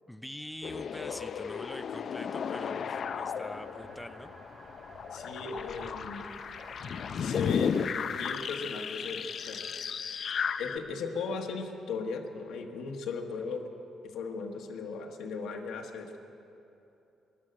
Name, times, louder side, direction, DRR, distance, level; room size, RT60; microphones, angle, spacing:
voice 1, 0.1-4.3, left 1 dB, 5° left, 9 dB, 0.5 m, -44 dB
sound 1, 0.6-10.8, left 7 dB, 55° left, 0.5 m, -35 dB
sound 2, 3.0-8.5, right 2 dB, 45° right, 2.5 m, -53 dB
voice 2, 5.1-6.3 7.2-7.8 8.2-9.6 10.6-13.6 14.1-16.2, left 5 dB, 80° left, 3 dB, 1.4 m, -37 dB
14.5 x 11.5 x 7.7 m, 2.9 s
cardioid pair, 90°, 0 cm